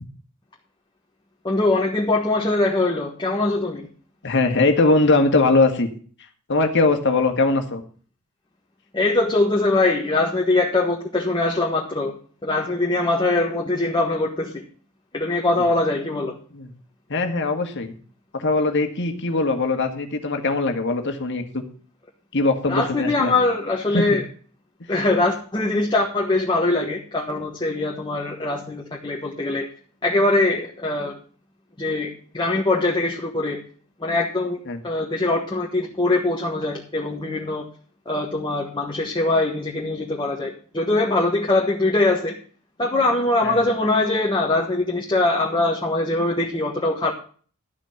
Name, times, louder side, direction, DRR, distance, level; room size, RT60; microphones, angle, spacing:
voice 1, 1.4-3.9 8.9-12.1 12.4-14.6 15.1-16.4 22.7-24.2 24.9-29.7 30.0-31.2 31.8-33.6 34.0-37.7 38.0-42.3 42.8-47.1, left 2 dB, 20° left, 0 dB, 1.5 m, -22 dB
voice 2, 4.2-5.9 6.5-7.8 16.5-16.7 17.1-17.9 18.3-21.6 22.3-23.3 23.9-24.2 34.7-34.8 43.4-43.6, left 3 dB, 55° left, 5 dB, 1.8 m, -21 dB
12.5 x 6.2 x 7.3 m, 0.43 s
head